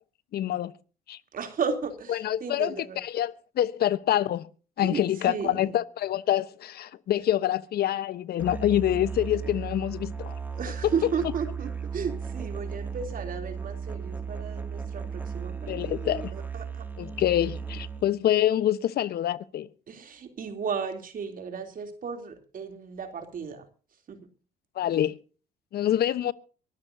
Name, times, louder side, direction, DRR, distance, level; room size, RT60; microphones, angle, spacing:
voice 1, 0.3-0.7 1.1-1.2 2.1-4.5 4.8-10.3 15.7-16.3 17.0-19.7 24.8-25.2 25.7-26.3, left 12 dB, 60° left, 1.0 m, -26 dB
voice 2, 1.3-3.0 4.8-5.0 5.3-5.8 10.6-15.9 16.3-16.8 19.9-23.6 24.1-24.3, right 6 dB, 50° right, 3.1 m, -34 dB
Musical instrument, 8.4-18.2, right 6 dB, 10° right, 2.3 m, -36 dB
23.5 x 13.0 x 2.7 m
supercardioid pair, 65°, 18 cm